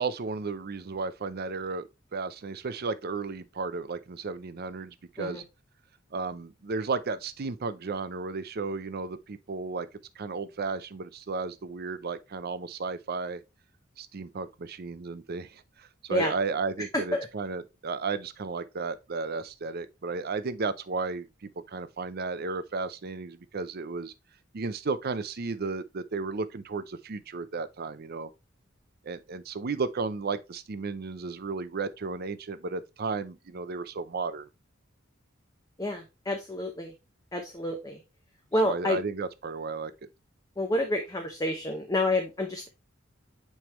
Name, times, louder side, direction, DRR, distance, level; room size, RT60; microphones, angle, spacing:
voice 1, 0.0-5.4 6.1-9.9 10.2-13.4 14.0-24.1 24.5-28.3 29.0-34.5 38.6-39.9, right 4 dB, 50° right, 0.6 m, -34 dB
voice 2, 16.9-17.3 35.8-36.9 37.3-38.0 38.5-39.0 40.6-42.7, left 1 dB, 20° left, 0.8 m, -29 dB
9.1 x 3.4 x 3.0 m
head